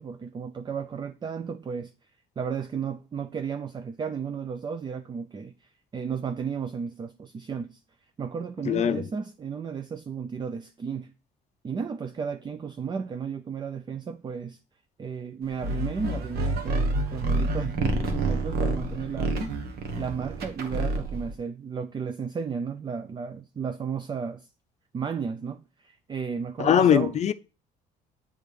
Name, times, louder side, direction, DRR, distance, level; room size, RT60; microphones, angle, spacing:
voice 1, 0.0-1.9 2.4-7.8 8.2-11.1 11.6-14.6 15.0-19.4 20.0-24.5 24.9-27.2, right 6 dB, 25° right, 0.4 m, -33 dB
voice 2, 8.7-9.0 26.6-27.3, left 9 dB, 40° left, 0.5 m, -21 dB
sound 1, 15.6-21.3, right 2 dB, 70° right, 1.4 m, -28 dB
8.1 x 3.5 x 5.1 m
cardioid pair, 110°, 17 cm